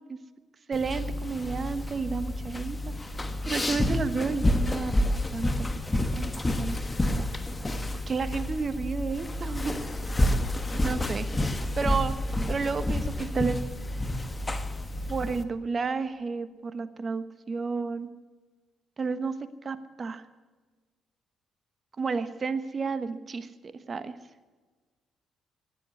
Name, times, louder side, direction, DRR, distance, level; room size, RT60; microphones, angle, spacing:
sound 1, 0.7-15.4, left 1 dB, 20° left, 1.3 m, -29 dB
voice 1, 0.7-2.9 3.5-6.8 7.1-7.3 8.1-9.9 10.8-11.3 11.8-13.6 15.1-18.1 19.0-19.3 19.6-20.2 22.0-24.2, right 4 dB, 40° right, 12 dB, 1.2 m, -31 dB
18.5 x 7.8 x 9.6 m, 1.3 s
cardioid pair, 90°, 0 cm